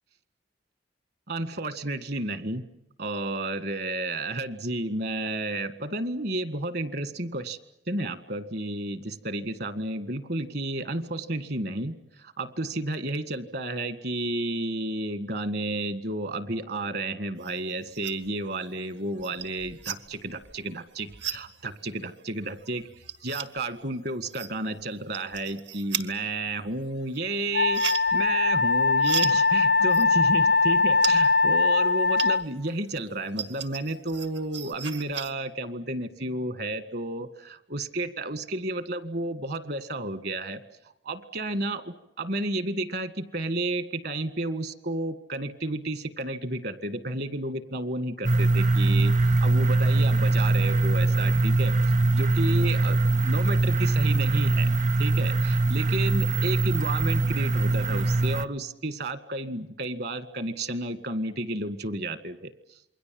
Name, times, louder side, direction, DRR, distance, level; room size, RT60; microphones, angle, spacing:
voice 1, 1.3-2.7 3.0-7.6 7.9-22.9 23.2-27.8 28.1-40.6 41.0-51.7 52.1-54.7 55.0-62.5, right 2 dB, 60° right, 12 dB, 1.8 m, -32 dB
sound 1, 17.4-18.4 18.7-32.6 33.0-35.3, right 9 dB, 75° right, 1.7 m, -37 dB
Wind instrument woodwind instrument, 27.5-32.4, left 3 dB, 80° left, 0.9 m, -21 dB
sound 2, 48.2-58.5, right 2 dB, 45° right, 0.9 m, -22 dB
28.0 x 22.5 x 7.7 m, 0.83 s
head